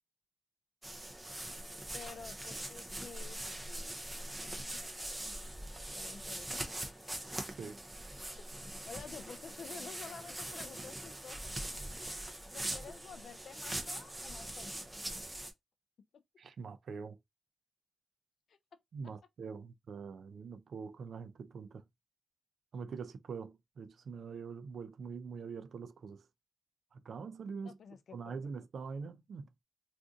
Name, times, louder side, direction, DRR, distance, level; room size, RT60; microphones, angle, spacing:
sound 1, 0.8-15.5, right 1 dB, 10° right, 0.5 m, -42 dB
voice 1, 1.9-4.0 4.4-5.3 5.9-6.7 8.6-11.5 12.5-14.9 18.5-18.6 19.0-19.1 27.6-28.4, left 6 dB, 65° left, 0.4 m, -51 dB
voice 2, 16.4-17.2 18.9-21.8 22.7-26.2 26.9-27.7 28.1-29.5, right 5 dB, 60° right, 0.4 m, -44 dB
2.5 x 2.5 x 3.7 m
wide cardioid pair, 175°, 0 cm